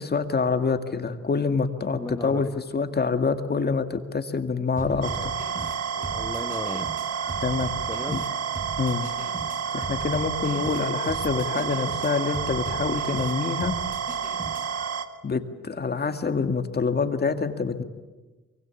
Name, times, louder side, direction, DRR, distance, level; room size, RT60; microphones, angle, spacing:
voice 1, 0.0-5.3 7.4-7.7 8.1-8.2 8.8-9.1 9.7-13.7 15.2-17.8, left 4 dB, 35° left, 7 dB, 2.1 m, -26 dB
voice 2, 1.9-2.5 6.0-7.2 7.9-8.3, left 2 dB, 10° left, 6 dB, 1.0 m, -36 dB
sound 1, 4.8-14.9, right 2 dB, 25° right, 4.2 m, -38 dB
sound 2, 5.0-15.1, right 7 dB, 55° right, 1.6 m, -30 dB
24.5 x 23.5 x 8.5 m, 1.2 s
cardioid pair, 90°, 30 cm